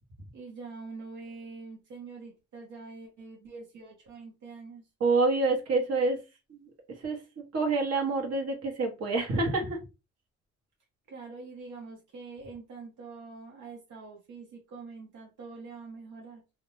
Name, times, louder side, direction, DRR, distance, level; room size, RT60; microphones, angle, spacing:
voice 1, 0.3-4.9 11.1-16.4, right 4 dB, 80° right, -1 dB, 0.9 m, -45 dB
voice 2, 5.0-6.2 6.5-6.6 7.0-7.2 7.5-9.8, right 3 dB, 55° right, 1 dB, 1.1 m, -27 dB
2.4 x 2.2 x 3.1 m, 0.28 s
cardioid pair, 90°, 30 cm